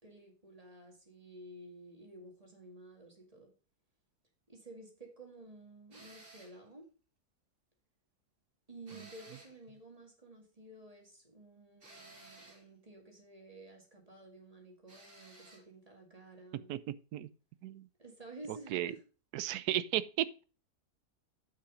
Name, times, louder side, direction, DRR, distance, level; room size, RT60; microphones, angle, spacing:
voice 1, 0.0-3.5 4.5-6.9 8.7-16.7 18.0-19.0, right 2 dB, 20° right, 2.1 m, -53 dB
sound 1, 5.9-6.6 8.9-9.6 11.8-12.7 14.9-15.7, right 2 dB, 45° right, 2.9 m, -56 dB
voice 2, 16.7-17.3 17.6-17.8 18.5-18.9 19.3-20.4, right 13 dB, 80° right, 1.1 m, -35 dB
8.7 x 5.7 x 5.0 m
omnidirectional pair, 1.7 m